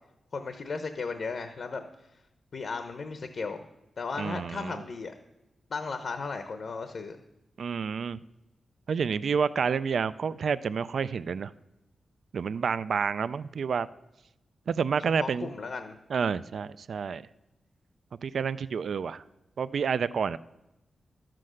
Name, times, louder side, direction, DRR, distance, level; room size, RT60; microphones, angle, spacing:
voice 1, 0.3-1.8 2.5-3.6 4.0-5.1 5.7-7.2 15.2-16.0, left 4 dB, 60° left, 7 dB, 0.8 m, -35 dB
voice 2, 4.2-4.8 7.6-8.2 8.9-11.5 12.3-13.9 14.7-15.5 16.1-17.2 18.2-19.2 19.6-20.4, right 6 dB, 70° right, 16 dB, 0.3 m, -29 dB
12.0 x 7.6 x 6.4 m, 0.93 s
wide cardioid pair, 110°, 0 cm